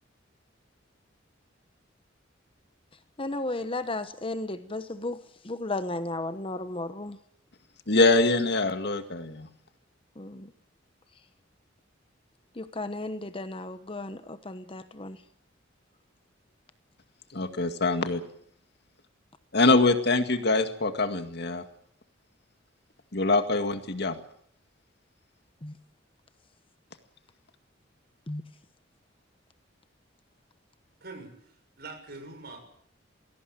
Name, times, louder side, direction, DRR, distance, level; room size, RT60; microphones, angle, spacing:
voice 1, 3.2-7.2 10.2-10.5 12.5-15.2 25.6-25.7 28.3-28.4, left 2 dB, 30° left, 11 dB, 1.0 m, -34 dB
voice 2, 7.9-9.5 17.3-18.2 19.5-21.6 23.1-24.2, left 2 dB, 60° left, 8 dB, 2.0 m, -24 dB
voice 3, 31.0-32.6, right 3 dB, 55° right, 6 dB, 6.4 m, -44 dB
21.0 x 17.0 x 9.1 m, 0.68 s
head